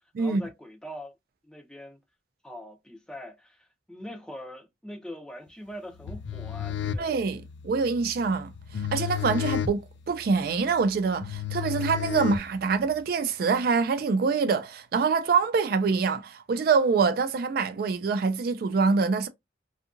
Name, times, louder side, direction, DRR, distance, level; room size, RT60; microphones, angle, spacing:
voice 1, 0.2-1.1 1.4-2.0 2.4-7.1, equal, 5° left, 0.5 m, -42 dB
sound 1, 6.0-12.9, left 9 dB, 70° left, 0.3 m, -33 dB
voice 2, 7.0-9.8 10.1-19.3, right 5 dB, 50° right, 0.3 m, -25 dB
2.7 x 2.4 x 2.4 m
head